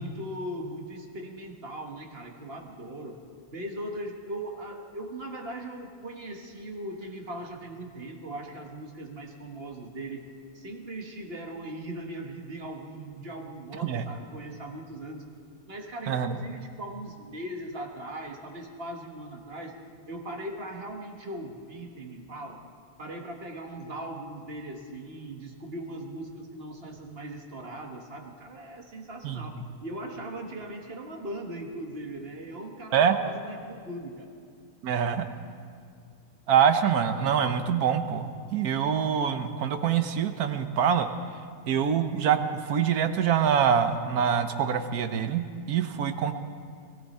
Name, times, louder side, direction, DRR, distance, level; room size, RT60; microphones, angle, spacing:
voice 1, 0.0-3.2 3.5-10.2 10.5-15.2 15.7-19.7 20.1-22.6 23.0-34.4, right 1 dB, 40° right, 3 dB, 1.6 m, -39 dB
voice 2, 16.1-16.4 29.2-29.5 32.9-33.2 34.8-35.2 36.5-41.1 41.7-42.4 42.7-46.3, right 8 dB, 75° right, 9 dB, 1.4 m, -25 dB
21.5 x 15.0 x 4.3 m, 2.3 s
omnidirectional pair, 1.6 m